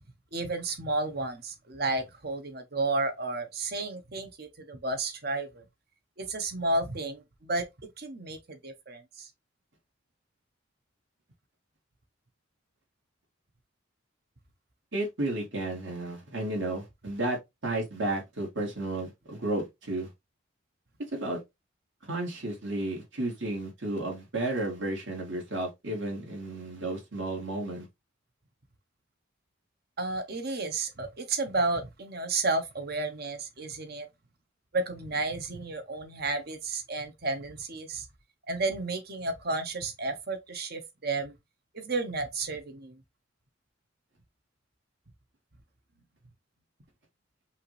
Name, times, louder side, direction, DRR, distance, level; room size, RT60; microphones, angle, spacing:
voice 1, 0.3-5.6 6.2-7.6 8.0-9.3 30.0-34.1 34.7-38.0 38.5-41.3 41.7-43.0, right 3 dB, 50° right, 1.0 m, -32 dB
voice 2, 14.9-17.4 17.6-20.1 21.1-21.4 22.1-27.9, right 2 dB, 65° right, 2.3 m, -32 dB
5.5 x 2.6 x 3.2 m
head